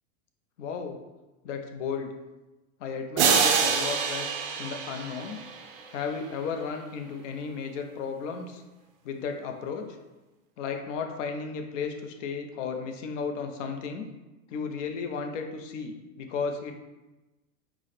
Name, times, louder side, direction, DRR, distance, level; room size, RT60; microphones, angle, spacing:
voice 1, 0.6-1.0 1.4-2.1 2.8-4.3 4.6-5.4 5.9-8.6 9.0-9.9 10.6-14.1 14.5-16.7, left 5 dB, 55° left, 4 dB, 0.7 m, -34 dB
sound 1, 3.2-5.8, right 6 dB, 40° right, 0.5 m, -25 dB
4.7 x 2.1 x 4.0 m, 1.1 s
hypercardioid pair, 140°, 44 cm